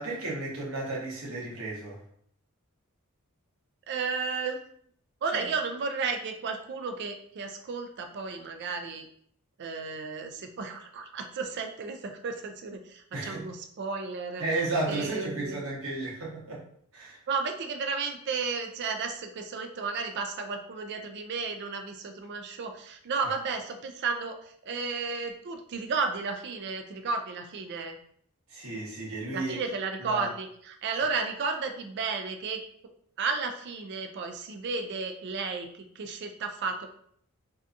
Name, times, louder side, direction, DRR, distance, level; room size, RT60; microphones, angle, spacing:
voice 1, 0.0-2.0 5.3-5.4 13.1-13.5 14.4-16.6 16.9-17.2 28.5-29.6 30.0-30.3, right 2 dB, 70° right, -5 dB, 1.0 m, -33 dB
voice 2, 3.9-4.6 5.2-9.1 9.6-14.4 14.9-15.6 17.3-28.0 29.3-32.6 33.2-36.9, right 4 dB, 50° right, 5 dB, 0.3 m, -33 dB
2.6 x 2.3 x 2.5 m, 0.65 s
head